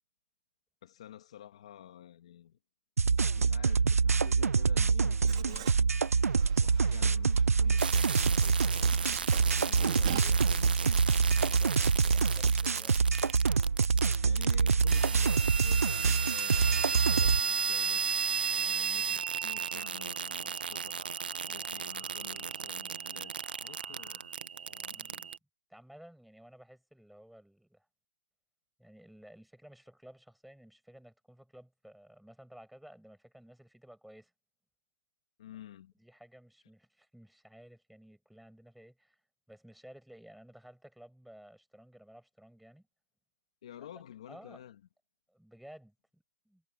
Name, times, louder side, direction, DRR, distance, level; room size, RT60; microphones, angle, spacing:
voice 1, 0.8-2.6 3.3-5.9 6.6-9.1 9.4-11.0 14.2-16.8 17.2-18.1 18.5-21.0 21.5-24.2 24.7-25.3 35.4-35.9 43.6-44.8, left 11 dB, 25° left, 1.8 m, -50 dB
sound 1, 3.0-17.4, right 5 dB, 90° right, 0.6 m, -26 dB
Writing, 5.3-10.2, right 12 dB, 20° right, 2.3 m, -42 dB
sound 2, 7.8-25.4, right 6 dB, 40° right, 1.0 m, -35 dB
voice 2, 11.2-13.0 24.9-25.2 25.7-27.9 28.8-34.3 36.0-39.2 39.5-42.9 43.8-43.9 44.3-44.6 45.3-46.6, equal, ahead, 6.7 m, -55 dB
hypercardioid pair, 180°, 8 cm